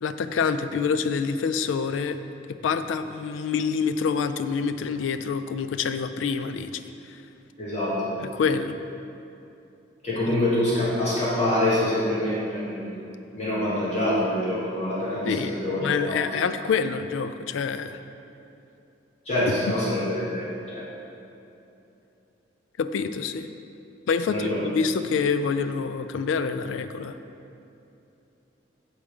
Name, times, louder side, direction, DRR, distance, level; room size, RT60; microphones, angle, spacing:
voice 1, 0.0-2.2 2.6-6.8 8.2-8.8 10.3-10.4 15.2-18.0 22.8-23.5 24.1-27.2, left 5 dB, 80° left, 10 dB, 0.3 m, -26 dB
voice 2, 7.6-8.1 10.0-13.0 13.4-16.3 19.2-20.5 20.7-20.8 24.3-24.6, left 1 dB, 35° left, -9 dB, 1.4 m, -25 dB
8.7 x 3.4 x 5.0 m, 2.8 s
head